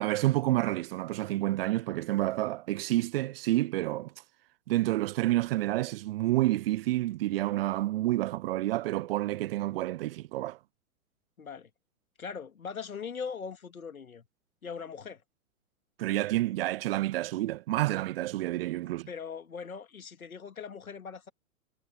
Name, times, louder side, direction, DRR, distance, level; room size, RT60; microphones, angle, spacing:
voice 1, 0.0-4.1 4.7-10.6 16.0-19.1, right 16 dB, 40° right, 0.8 m, -29 dB
voice 2, 11.4-11.7 12.2-14.3 14.6-15.2 19.1-21.3, left 6 dB, 75° left, 2.3 m, -40 dB
figure-of-eight pair, 110°, 43 cm